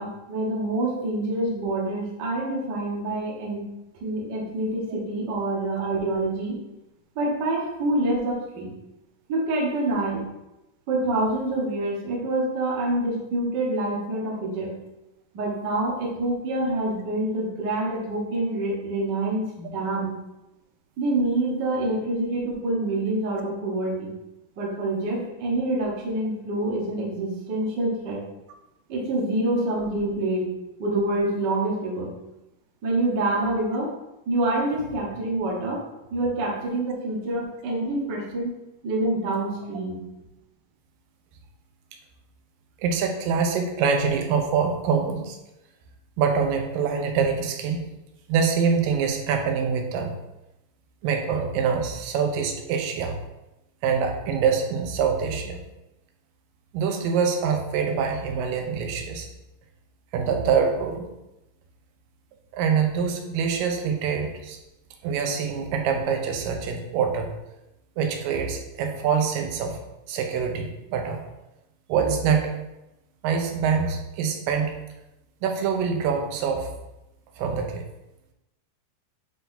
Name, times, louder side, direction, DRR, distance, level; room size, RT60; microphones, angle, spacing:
voice 1, 0.0-3.6 4.0-6.5 7.1-8.7 9.3-10.2 10.9-14.7 15.3-20.1 21.0-24.1 24.6-28.2 28.9-32.1 32.8-33.9 34.3-35.8 36.1-38.6 38.8-40.0, right 2 dB, 60° right, -3 dB, 1.1 m, -26 dB
voice 2, 42.8-45.4 46.2-47.8 48.3-50.1 51.0-53.2 53.8-55.6 56.7-59.3 60.1-61.1 62.5-64.6 65.0-67.3 68.0-69.8 70.1-71.2 71.9-72.5 73.2-74.8 75.4-76.7 77.4-77.8, right 6 dB, 85° right, 4 dB, 2.4 m, -25 dB
9.1 x 3.9 x 2.7 m, 0.94 s
omnidirectional pair, 3.9 m